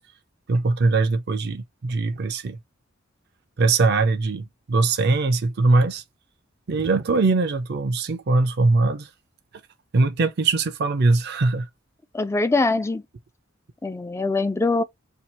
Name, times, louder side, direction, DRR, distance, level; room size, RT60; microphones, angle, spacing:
voice 1, 0.5-2.6 3.6-6.0 6.7-9.1 9.9-11.7, right 3 dB, 55° right, 0.5 m, -21 dB
voice 2, 12.1-13.0 13.8-14.8, left 3 dB, 15° left, 0.3 m, -22 dB
2.8 x 2.3 x 4.2 m
head